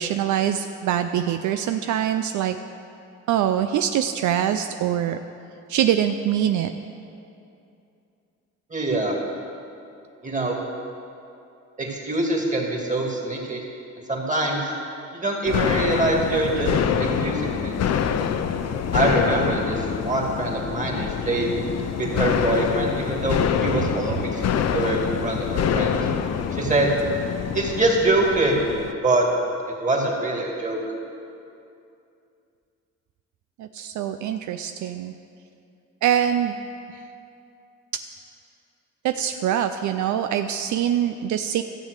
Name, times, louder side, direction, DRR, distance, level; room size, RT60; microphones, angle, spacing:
voice 1, 0.0-2.6 3.3-5.2 5.7-6.7 24.1-24.2 26.7-26.8 33.6-35.1 36.0-36.6 36.9-37.0 39.0-41.6, right 10 dB, 75° right, 8 dB, 0.5 m, -24 dB
voice 2, 8.7-9.2 10.2-10.6 11.8-13.6 14.1-14.6 15.1-16.7 17.0-17.8 18.9-21.5 22.0-26.0 26.5-26.9 27.5-28.6 29.0-29.2 29.8-30.8, right 2 dB, 25° right, 0 dB, 2.5 m, -24 dB
sound 1, 15.5-28.9, left 7 dB, 60° left, 0.7 m, -25 dB
13.5 x 7.4 x 6.6 m, 2.6 s
cardioid pair, 90°, 30 cm